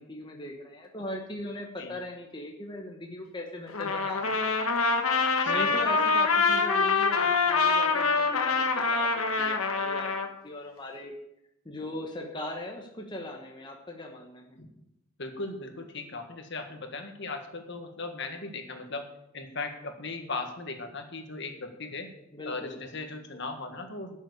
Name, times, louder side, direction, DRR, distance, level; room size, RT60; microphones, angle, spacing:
voice 1, 0.0-4.6 5.4-9.1 9.4-11.1 11.6-14.6 22.3-22.8, left 1 dB, 20° left, 1 dB, 1.2 m, -39 dB
Trumpet, 3.7-10.3, left 4 dB, 80° left, 1.6 m, -25 dB
voice 2, 5.4-5.8 14.6-14.7 15.2-19.1 19.3-22.1 22.4-24.2, left 3 dB, 55° left, 5 dB, 1.7 m, -38 dB
11.5 x 7.3 x 8.4 m, 0.83 s
head